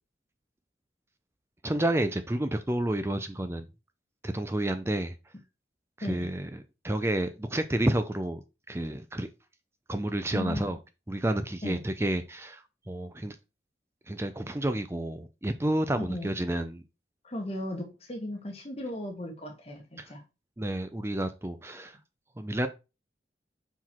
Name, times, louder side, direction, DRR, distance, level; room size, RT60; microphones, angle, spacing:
voice 1, 1.6-3.7 4.2-5.1 6.0-8.4 8.7-9.3 9.9-10.8 11.1-13.4 14.1-16.8 20.0-20.1 20.6-22.0 22.4-22.7, right 1 dB, 15° right, 0.5 m, -30 dB
voice 2, 10.3-10.6 11.6-11.8 16.0-16.3 17.2-20.2, left 1 dB, 35° left, 1.4 m, -36 dB
6.0 x 4.6 x 4.4 m
head